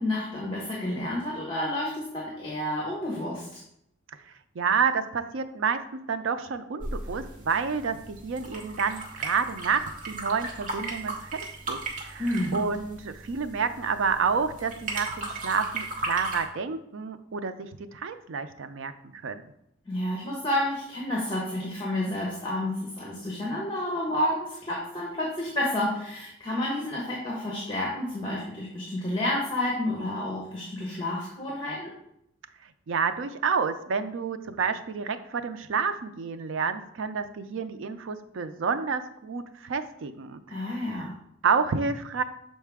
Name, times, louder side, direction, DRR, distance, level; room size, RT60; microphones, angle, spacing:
voice 1, 0.0-3.6 12.2-12.7 19.9-31.9 40.5-41.1, left 1 dB, 25° left, -3 dB, 1.1 m, -30 dB
voice 2, 4.5-5.8 6.1-11.3 11.7-19.4 32.9-41.1 41.4-42.2, right 5 dB, 85° right, 10 dB, 0.5 m, -29 dB
sound 1, 6.8-16.5, right 2 dB, 40° right, 0.9 m, -36 dB
6.5 x 4.2 x 3.5 m, 0.77 s
head